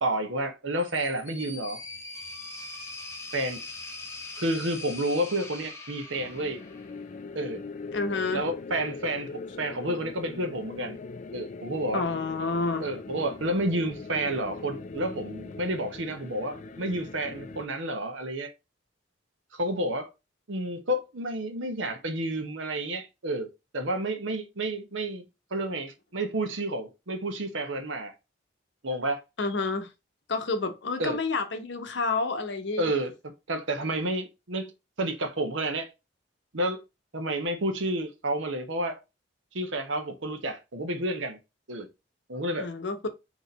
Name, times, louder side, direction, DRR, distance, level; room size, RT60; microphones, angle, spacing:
voice 1, 0.0-1.8 3.3-3.6 4.4-6.6 7.3-7.6 8.3-11.0 11.3-12.0 12.8-18.5 19.5-20.1 20.5-23.5 23.7-25.2 25.5-28.1 28.8-29.2 31.0-31.2 32.8-33.1 33.5-34.7 35.0-35.9 36.5-36.8 37.1-39.0 39.5-41.4 41.7-41.9 42.3-42.7, right 1 dB, 75° right, 1.0 m, -30 dB
sound 1, 0.8-7.0, left 2 dB, 15° left, 0.8 m, -41 dB
sound 2, 6.1-17.7, left 3 dB, 40° left, 0.4 m, -41 dB
voice 2, 7.9-8.5 11.9-12.9 29.4-29.9 30.3-32.9 42.6-43.1, left 3 dB, 60° left, 0.8 m, -29 dB
4.1 x 3.0 x 4.0 m
head